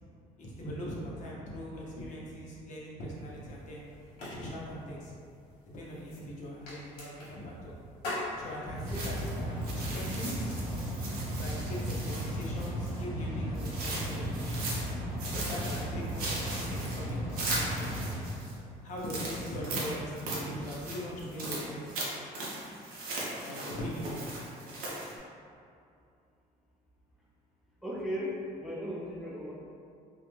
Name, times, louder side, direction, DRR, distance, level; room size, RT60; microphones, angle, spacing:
voice 1, 0.4-3.8 4.3-5.1 5.7-7.7 8.4-10.5 11.4-14.8 15.3-18.0 18.8-22.0 23.4-24.2, equal, 55° left, -5 dB, 0.7 m, -40 dB
sound 1, 3.0-10.6, left 1 dB, 85° left, 1.0 m, -44 dB
Mechanical fan, 8.3-18.8, equal, 30° right, 1.0 m, -36 dB
sound 2, 8.9-13.0 13.6-14.9 15.2-18.5 19.0-25.2, right 2 dB, 70° right, 0.7 m, -38 dB
voice 2, 27.8-29.5, equal, ahead, -6 dB, 0.3 m, -36 dB
2.4 x 2.1 x 3.0 m, 2.5 s
cardioid pair, 110°, 15 cm